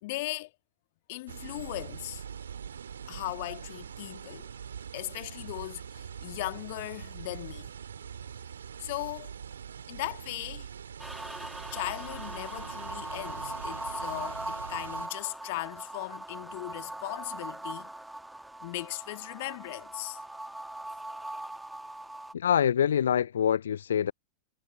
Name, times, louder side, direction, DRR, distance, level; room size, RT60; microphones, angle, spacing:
voice 1, 0.0-0.5 1.1-2.2 3.1-4.5 4.9-7.7 8.8-9.3 9.9-10.7 11.7-17.9 18.6-20.2, left 20 dB, 50° left, 1.8 m, -38 dB
sound 1, 1.3-15.1, right 7 dB, 70° right, 2.6 m, -43 dB
sound 2, 11.0-22.3, right 1 dB, 5° right, 1.5 m, -40 dB
voice 2, 22.3-24.1, left 9 dB, 65° left, 0.4 m, -25 dB
figure-of-eight pair, 90°, 0 cm